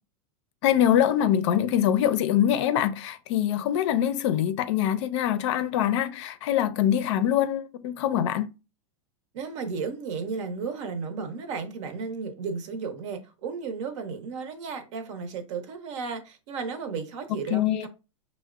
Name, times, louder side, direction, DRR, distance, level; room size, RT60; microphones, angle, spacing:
voice 1, 0.6-8.5 17.5-17.9, left 10 dB, 60° left, 0.4 m, -24 dB
voice 2, 9.3-17.9, right 5 dB, 60° right, 0.8 m, -34 dB
5.4 x 2.1 x 2.4 m
supercardioid pair, 140°, 17 cm